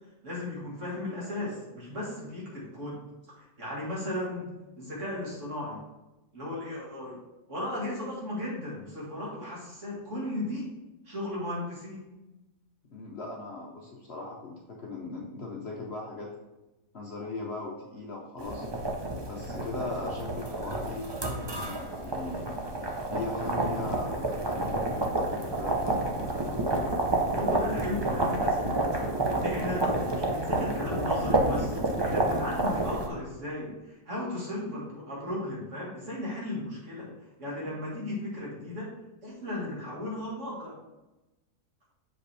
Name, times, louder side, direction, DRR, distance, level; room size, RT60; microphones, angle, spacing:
voice 1, 0.2-3.0 3.3-4.5 4.8-5.8 6.3-7.2 7.5-10.7 11.1-12.1 26.4-26.5 27.3-28.7 28.9-37.1 37.4-38.9 39.2-40.8, left 1 dB, 50° right, -5 dB, 2.3 m, -36 dB
voice 2, 12.9-16.3 16.9-18.7 19.2-21.1 21.6-22.5 23.1-26.0, left 3 dB, 50° left, -1 dB, 0.9 m, -39 dB
sound 1, 18.4-33.1, right 2 dB, 30° right, 0.5 m, -29 dB
6.7 x 5.1 x 3.4 m, 1.0 s
omnidirectional pair, 1.6 m